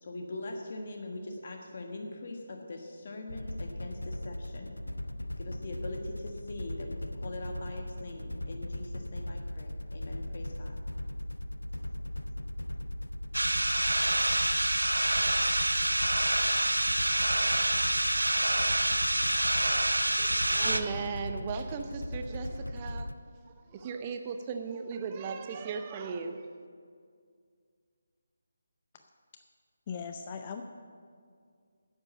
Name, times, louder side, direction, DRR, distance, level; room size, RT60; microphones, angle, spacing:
voice 1, 0.0-4.8 5.4-10.8, left 2 dB, 45° left, 2 dB, 1.4 m, -42 dB
sound 1, 3.3-23.2, left 1 dB, 90° left, 0.5 m, -38 dB
sound 2, 13.3-20.8, right 1 dB, 85° right, 0.7 m, -27 dB
voice 2, 20.1-23.2 23.6-26.5, right 5 dB, 25° right, 7 dB, 0.7 m, -37 dB
voice 3, 29.9-30.6, left 6 dB, 30° left, 6 dB, 0.5 m, -38 dB
10.0 x 8.2 x 7.3 m, 2.1 s
figure-of-eight pair, 150°, 0 cm